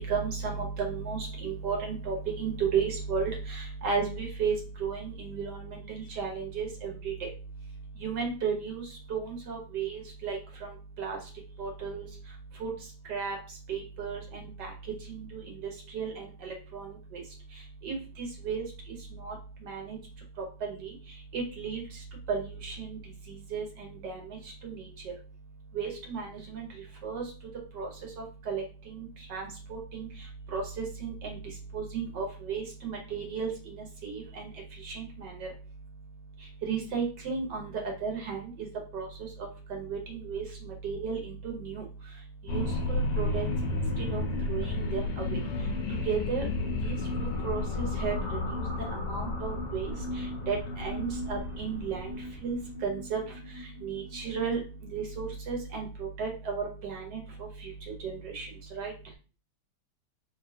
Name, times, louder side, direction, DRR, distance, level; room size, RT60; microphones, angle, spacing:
voice 1, 0.1-4.5 4.8-7.3 8.0-8.8 9.1-10.4 11.0-11.2 11.6-12.0 12.6-12.7 13.1-13.4 13.7-14.7 15.1-17.2 17.8-18.6 19.2-19.3 19.6-20.0 20.6-20.9 21.3-21.8 22.3-23.0 23.5-24.2 24.6-24.9 25.7-26.7 27.0-27.2 27.8-27.9 28.2-28.6 28.9-30.1 30.5-31.4 31.7-34.5 34.8-35.5 36.6-37.7 38.0-38.7 38.9-41.8 42.5-43.5 43.7-43.8 44.1-44.2 44.5-45.4 46.1-46.5 46.8-48.7 49.1-49.9 50.5-52.2 52.4-53.2 53.8-54.6 54.9-57.2 57.6-57.7 58.0-58.5 58.8-58.9, right 6 dB, 75° right, 1 dB, 1.6 m, -34 dB
sound 1, 42.5-55.3, left 2 dB, 90° left, 1.4 m, -33 dB
3.9 x 3.2 x 2.7 m, 0.35 s
omnidirectional pair, 1.9 m